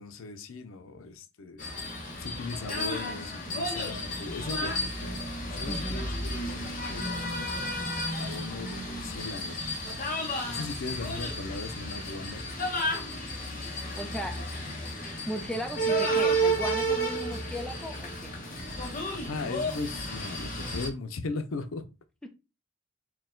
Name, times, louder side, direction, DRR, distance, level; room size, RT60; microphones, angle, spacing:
voice 1, 0.0-1.7 2.2-7.5 8.2-9.6 10.5-12.5 19.1-21.9, left 3 dB, 85° left, 0.5 m, -38 dB
sound 1, 1.6-20.9, right 1 dB, 40° left, 0.9 m, -32 dB
voice 2, 5.7-6.1 14.0-14.4 15.3-18.3 22.2-22.3, equal, 5° left, 0.5 m, -36 dB
4.5 x 2.2 x 3.7 m
head